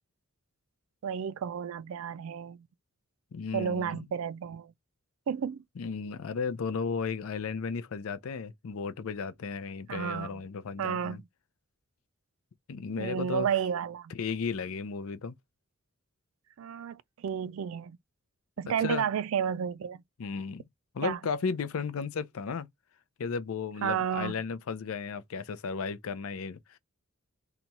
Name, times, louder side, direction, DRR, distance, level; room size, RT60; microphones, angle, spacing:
voice 1, 1.0-2.7 3.5-4.7 5.3-5.6 9.9-10.4 10.8-11.2 13.0-14.1 16.6-18.0 18.6-20.0 21.0-21.2 23.8-24.3, right 8 dB, 70° right, 0.3 m, -32 dB
voice 2, 3.3-4.0 5.8-11.2 12.7-13.5 14.1-15.3 18.8-19.1 20.2-20.6 20.9-22.7 23.2-26.8, left 5 dB, 75° left, 0.5 m, -34 dB
2.9 x 2.3 x 4.0 m
head